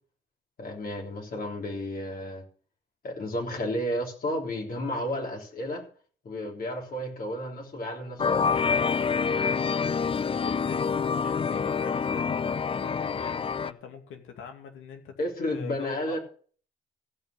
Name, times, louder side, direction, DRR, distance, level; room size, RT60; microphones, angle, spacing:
voice 1, 0.6-2.4 3.0-5.9 6.2-8.6 15.2-16.2, left 1 dB, 45° left, 3.7 m, -32 dB
sound 1, 8.2-13.7, left 5 dB, 30° left, 0.5 m, -27 dB
voice 2, 10.1-10.9 11.2-15.1 15.5-16.2, left 7 dB, 85° left, 2.5 m, -43 dB
15.5 x 5.6 x 6.7 m
cardioid pair, 90°, 20 cm